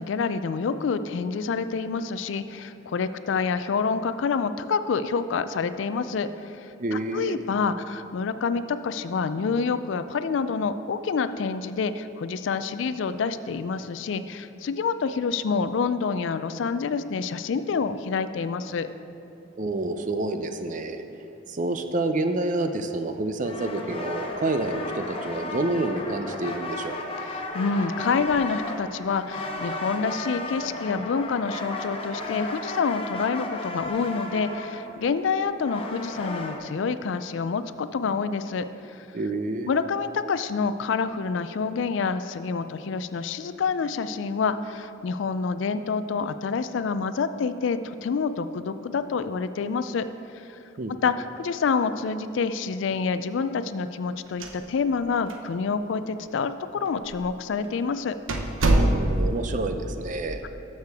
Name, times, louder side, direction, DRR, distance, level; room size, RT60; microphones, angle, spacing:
voice 1, 0.0-18.9 27.2-39.1 39.7-50.1 51.0-58.1, left 5 dB, 70° left, 12 dB, 0.4 m, -27 dB
voice 2, 6.8-7.4 19.6-21.0 21.5-27.0 39.1-39.7 50.8-50.9 58.8-60.4, right 2 dB, 40° right, 8 dB, 0.5 m, -28 dB
sound 1, 23.4-36.6, left 2 dB, 30° left, 0.7 m, -34 dB
sound 2, 54.3-55.0 55.3-55.4 56.2-56.3 57.0-57.2 57.6-57.7 58.3-59.4, right 1 dB, 85° right, 0.8 m, -23 dB
13.0 x 6.5 x 3.5 m, 2.8 s
head